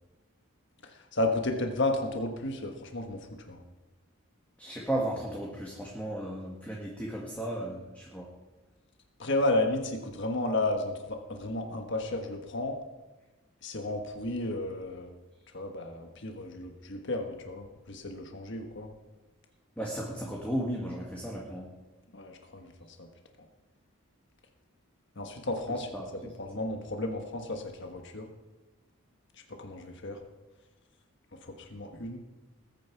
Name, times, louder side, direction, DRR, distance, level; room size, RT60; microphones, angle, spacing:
voice 1, 0.8-3.6 9.2-12.7 13.6-15.1 15.5-18.9 22.1-22.7 23.0-23.1 25.2-25.9 26.4-28.3 29.6-30.2 31.4-32.2, left 2 dB, 55° left, 4 dB, 1.4 m, -33 dB
voice 2, 4.6-8.3 19.8-21.7 25.7-26.1, right 1 dB, 5° left, -3 dB, 1.8 m, -35 dB
20.0 x 9.3 x 4.7 m, 1.2 s
head